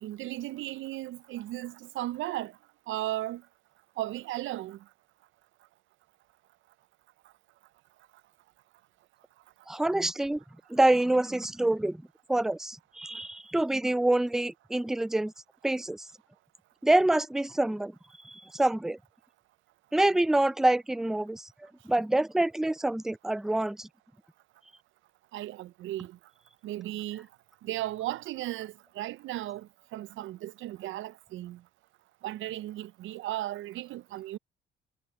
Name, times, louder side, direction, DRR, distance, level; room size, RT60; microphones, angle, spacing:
voice 1, 0.0-2.5 2.9-3.4 4.0-4.8 25.3-26.2 26.6-27.3 27.6-31.6 32.2-34.4, right 15 dB, 80° right, 0.5 m, -36 dB
voice 2, 9.7-10.4 10.7-12.0 12.3-15.3 15.6-16.0 16.8-17.9 18.2-19.0 19.9-21.5 21.9-23.9, right 1 dB, ahead, 0.4 m, -26 dB
cardioid pair, 90°, 20 cm